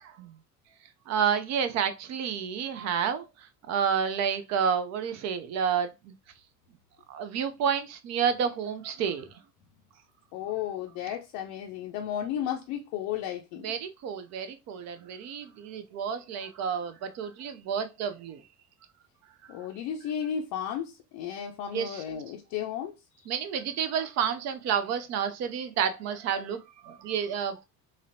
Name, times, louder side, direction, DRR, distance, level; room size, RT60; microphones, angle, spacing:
voice 1, 1.1-3.3 3.7-6.1 7.1-9.3 13.6-18.4 21.7-22.0 23.3-27.6, right 7 dB, 40° right, 0.4 m, -30 dB
voice 2, 10.3-13.8 19.5-22.9, left 9 dB, 45° left, 0.5 m, -34 dB
3.8 x 2.0 x 2.6 m
figure-of-eight pair, 65°, 47 cm